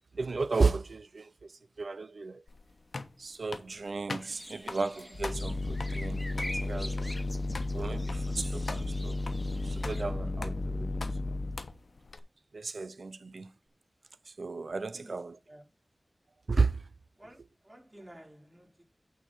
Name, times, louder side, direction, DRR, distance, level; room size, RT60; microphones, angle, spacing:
voice 1, 0.2-1.5 1.8-2.4 3.2-6.3 6.6-7.1 7.7-9.2 9.6-10.9 12.5-13.5 14.4-15.4 16.5-16.8, right 4 dB, 80° right, 0.5 m, -33 dB
sound 1, 2.5-12.2, left 3 dB, 80° left, 1.1 m, -45 dB
sound 2, 4.2-10.0, left 1 dB, 20° left, 1.3 m, -45 dB
sound 3, 5.1-11.7, left 2 dB, 60° left, 1.1 m, -33 dB
voice 2, 17.6-18.8, right 1 dB, 25° right, 4.4 m, -52 dB
9.1 x 4.6 x 5.9 m
wide cardioid pair, 60°, 0 cm